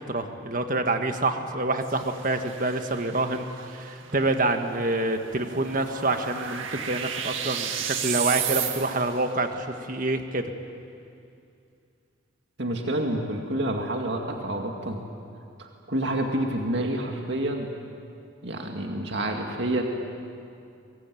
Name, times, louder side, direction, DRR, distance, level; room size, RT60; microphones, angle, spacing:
voice 1, 0.0-10.5, right 2 dB, 45° right, 6 dB, 1.7 m, -27 dB
sound 1, 1.8-9.2, right 8 dB, 85° right, 1.9 m, -34 dB
voice 2, 12.6-15.0 15.6-17.7 18.4-19.8, right 1 dB, 60° right, 2 dB, 2.2 m, -28 dB
23.5 x 23.0 x 9.3 m, 2.5 s
head